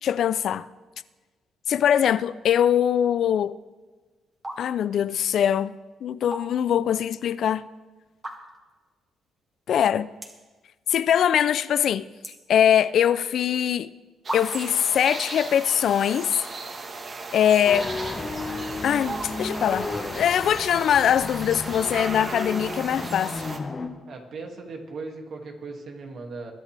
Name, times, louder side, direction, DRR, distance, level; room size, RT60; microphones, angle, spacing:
voice 1, 0.0-0.7 1.7-3.6 4.6-7.6 9.7-10.1 10.9-12.1 12.5-13.9 14.3-16.4 17.3-17.9 18.8-19.9 20.2-23.4, left 9 dB, 65° left, 0.4 m, -22 dB
sound 1, 3.6-3.9 4.3-4.6 4.9-5.3 6.1-6.8 7.2-7.3 8.1-8.7 9.2-9.3 9.5-9.6 10.1-10.5 10.9-11.4 11.7-13.1 13.8-13.9 14.3-14.8, right 1 dB, 20° right, 2.2 m, -36 dB
sound 2, 14.2-23.6, right 3 dB, 40° right, 1.4 m, -36 dB
sound 3, 17.7-23.9, left 3 dB, 35° left, 1.5 m, -33 dB
voice 2, 24.1-26.5, right 3 dB, 60° right, 2.3 m, -38 dB
22.5 x 10.5 x 3.4 m
cardioid pair, 90°, 0 cm